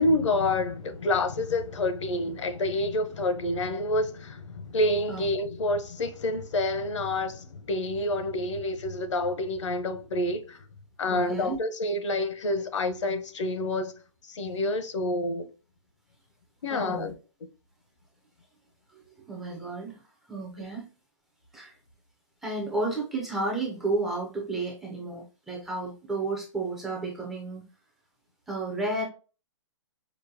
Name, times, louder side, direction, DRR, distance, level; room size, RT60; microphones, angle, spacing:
voice 1, 0.0-10.6 11.0-13.9 14.3-15.5 16.6-17.1, left 2 dB, 70° left, 0.8 m, -28 dB
voice 2, 11.1-11.6 16.7-17.1 18.9-19.0 19.3-20.0 20.3-20.9 21.5-21.7 22.4-27.6 28.5-29.0, right 2 dB, ahead, 0.3 m, -32 dB
5.1 x 2.1 x 2.6 m
hypercardioid pair, 165°, 16 cm